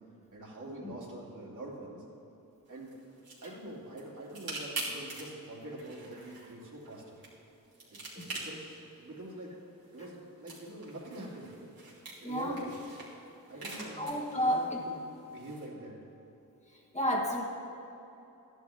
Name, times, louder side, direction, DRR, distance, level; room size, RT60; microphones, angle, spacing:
voice 1, 0.3-2.0 2.7-3.0 3.4-7.2 7.9-9.5 9.9-11.5 12.2-12.7 13.5-14.5 14.9-15.0 15.2-16.0, right 1 dB, 60° right, -5 dB, 2.7 m, -45 dB
sound 1, 2.7-15.7, right 2 dB, 85° right, 2.8 m, -46 dB
voice 2, 12.2-12.6 14.0-14.8 16.9-17.4, equal, 20° left, -1 dB, 1.3 m, -31 dB
13.5 x 11.0 x 3.5 m, 3.0 s
wide cardioid pair, 95°, 35 cm